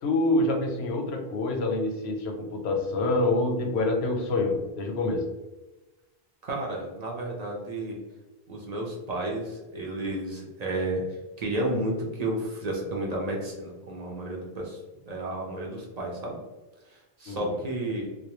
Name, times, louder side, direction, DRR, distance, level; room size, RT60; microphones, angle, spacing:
voice 1, 0.0-5.2 17.3-17.5, left 2 dB, 85° left, 2 dB, 0.8 m, -26 dB
voice 2, 6.4-8.0 8.5-14.8 15.1-16.4 16.9-18.1, right 1 dB, 50° right, -2 dB, 0.5 m, -32 dB
2.2 x 2.1 x 2.9 m, 1.1 s
omnidirectional pair, 1.0 m